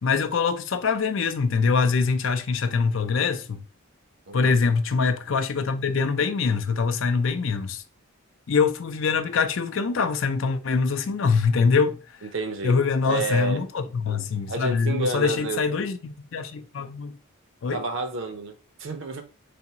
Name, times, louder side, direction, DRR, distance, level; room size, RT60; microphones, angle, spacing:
voice 1, 0.0-3.6 4.3-7.8 8.5-12.0 12.6-17.2 17.6-17.8, left 5 dB, 60° left, 0.4 m, -24 dB
voice 2, 12.2-13.6 14.5-15.6 17.7-19.2, right 3 dB, 60° right, 0.7 m, -30 dB
3.8 x 3.4 x 2.8 m
head